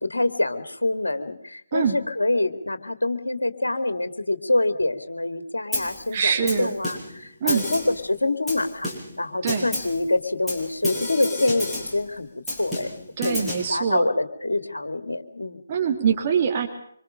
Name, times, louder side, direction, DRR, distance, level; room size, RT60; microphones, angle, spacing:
voice 1, 0.0-8.9 9.2-12.3 12.6-12.9 13.2-13.4 13.7-15.6, left 2 dB, 70° left, 9 dB, 2.6 m, -25 dB
Snare drum, 5.7-6.0 6.5-7.2 7.5-8.0 8.5-9.2 9.5-10.0 10.5-12.0 12.5-13.7, left 1 dB, 5° left, 6.5 m, -30 dB
voice 2, 6.1-6.8 7.4-7.6 9.4-9.7 13.2-14.1 15.7-16.7, right 7 dB, 30° right, 2 dB, 3.3 m, -23 dB
26.0 x 25.5 x 5.3 m, 0.67 s
figure-of-eight pair, 145°, 0 cm